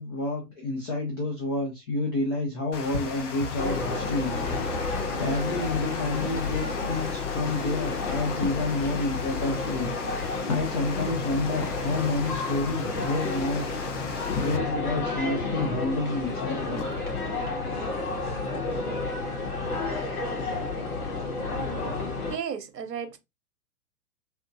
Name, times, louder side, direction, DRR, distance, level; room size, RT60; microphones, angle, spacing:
voice 1, 0.0-4.8 5.2-16.8 17.7-17.9 18.2-18.4, left 2 dB, 20° left, 0.4 m, -30 dB
Water, 2.7-14.6, left 4 dB, 45° left, 0.9 m, -37 dB
sound 1, 3.6-22.4, left 3 dB, 65° left, 2.0 m, -31 dB
sound 2, 8.4-14.9 15.3-17.5 17.9-18.0 18.4-18.5, left 6 dB, 85° left, 0.8 m, -43 dB
voice 2, 22.3-23.2, right 7 dB, 75° right, 0.9 m, -33 dB
3.4 x 2.9 x 2.6 m
figure-of-eight pair, 115°, 49 cm